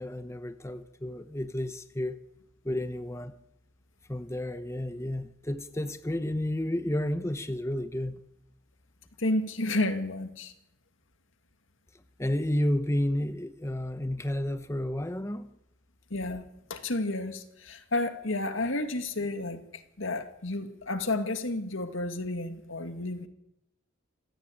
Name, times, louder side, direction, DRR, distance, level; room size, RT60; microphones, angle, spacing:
voice 1, 0.0-2.2 2.6-3.3 4.1-8.2 12.2-15.5, left 1 dB, 15° left, 0.9 m, -31 dB
voice 2, 9.2-10.5 16.1-16.4 16.7-19.6 20.0-23.3, left 2 dB, 75° left, 2.3 m, -31 dB
26.5 x 16.0 x 8.9 m
head